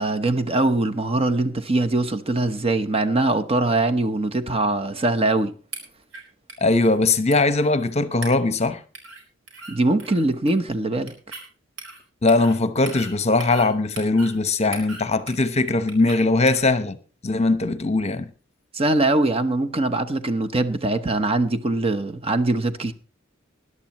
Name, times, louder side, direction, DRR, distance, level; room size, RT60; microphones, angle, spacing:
voice 1, 0.0-5.5 9.7-11.1 18.7-22.9, right 2 dB, 30° right, 0.9 m, -22 dB
sound 1, 5.7-6.2 6.5-6.6 6.8-7.0 7.3-7.9 8.2-8.6 9.0-9.2 9.5-9.7 10.0-10.7 11.1-11.5 11.8-12.0 12.3-12.6 12.9-13.7 14.0-14.4 14.7-15.6 15.9-16.2 16.5-16.6, right 3 dB, 75° right, 4.7 m, -38 dB
voice 2, 6.6-8.8 12.2-17.0 17.2-18.3, left 3 dB, 35° left, 0.9 m, -20 dB
20.5 x 11.0 x 3.0 m
head